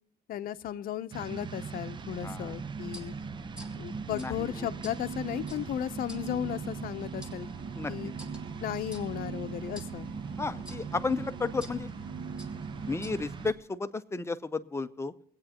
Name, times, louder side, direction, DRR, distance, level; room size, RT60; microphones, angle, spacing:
voice 1, 0.3-3.1 3.8-7.5 7.9-8.1 8.6-10.1, left 11 dB, 60° left, 10 dB, 0.7 m, -35 dB
sound 1, 1.1-13.5, right 5 dB, 30° right, 0.5 m, -40 dB
sound 2, 2.0-13.6, left 2 dB, 5° right, 1.9 m, -51 dB
voice 2, 2.2-2.5 4.1-4.7 7.7-7.9 10.4-11.9 12.9-15.1, left 4 dB, 15° left, 10 dB, 0.7 m, -33 dB
sound 3, 4.4-13.5, right 6 dB, 75° right, 1.6 m, -44 dB
25.0 x 8.9 x 2.9 m, 0.72 s
cardioid pair, 110°, 17 cm